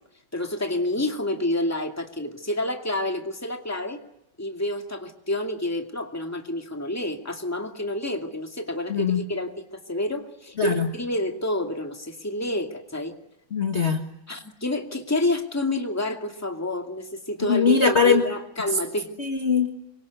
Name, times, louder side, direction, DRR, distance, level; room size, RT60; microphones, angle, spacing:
voice 1, 0.3-4.0 4.4-13.1 14.3-19.1, left 1 dB, 10° left, 4 dB, 2.2 m, -28 dB
voice 2, 8.9-9.2 10.6-10.9 13.5-14.1 17.4-18.2 19.2-19.7, left 6 dB, 35° left, 4 dB, 1.7 m, -21 dB
26.5 x 23.5 x 8.3 m, 0.83 s
omnidirectional pair, 2.2 m